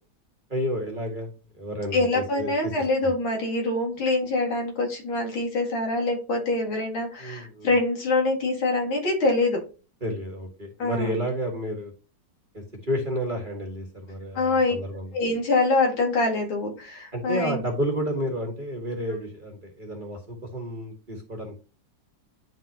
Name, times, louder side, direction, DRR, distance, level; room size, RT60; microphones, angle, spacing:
voice 1, 0.5-1.3 1.6-2.5 3.0-3.1 7.2-7.7 10.0-11.9 12.9-15.1 17.1-21.5, equal, 25° right, 1 dB, 1.6 m, -30 dB
voice 2, 1.9-9.6 10.8-11.2 14.3-14.7 15.1-17.6, left 2 dB, 80° left, 0 dB, 3.0 m, -25 dB
11.0 x 3.8 x 2.8 m, 0.34 s
omnidirectional pair, 2.2 m